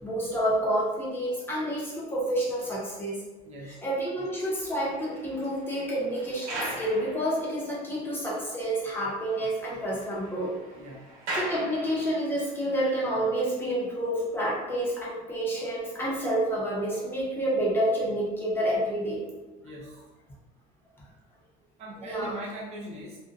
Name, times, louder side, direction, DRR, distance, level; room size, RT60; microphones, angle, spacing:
voice 1, 0.0-3.2 3.6-10.5 11.3-19.2 22.0-22.4, right 1 dB, 10° left, -6 dB, 0.6 m, -29 dB
voice 2, 3.4-3.8 10.7-11.1 19.6-20.0 21.8-23.2, right 1 dB, 40° right, -3 dB, 0.4 m, -41 dB
sound 1, 4.3-8.0 8.3-8.4 8.8-8.9 9.2-12.4 13.1-13.3, right 1 dB, 85° right, 1.0 m, -40 dB
2.5 x 2.1 x 2.4 m, 1.2 s
cardioid pair, 150°, 18 cm